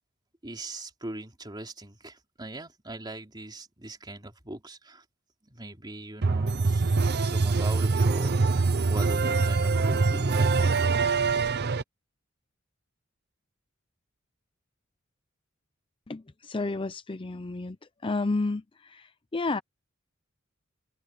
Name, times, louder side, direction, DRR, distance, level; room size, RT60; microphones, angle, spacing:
voice 1, 0.4-5.0 5.5-8.6 8.8-10.5, right 2 dB, 20° right, 3.2 m, -40 dB
sound 1, 6.2-11.8, right 4 dB, 50° right, 0.7 m, -24 dB
voice 2, 16.1-17.8 18.0-19.6, left 3 dB, 25° left, 0.6 m, -31 dB
head